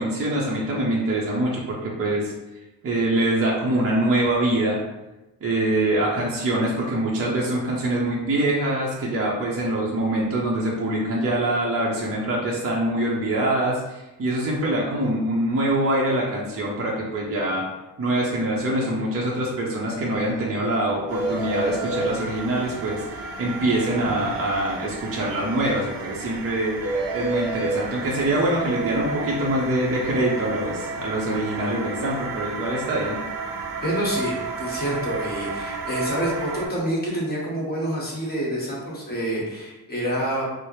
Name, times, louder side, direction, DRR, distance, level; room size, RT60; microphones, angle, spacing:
voice 1, 0.0-2.3 2.8-4.8 5.4-17.6 18.0-26.8 27.1-33.2, right 1 dB, 35° right, -4 dB, 0.7 m, -24 dB
sound 1, 19.9-20.0 20.3-20.4 20.6-20.7 21.1-22.1 26.8-27.8, right 2 dB, 10° left, 1.1 m, -27 dB
sound 2, 21.1-36.7, right 4 dB, 85° right, 0.7 m, -33 dB
voice 2, 33.8-40.4, equal, 25° left, -5 dB, 1.3 m, -27 dB
4.5 x 2.0 x 3.1 m, 1.0 s
cardioid pair, 110°, 40 cm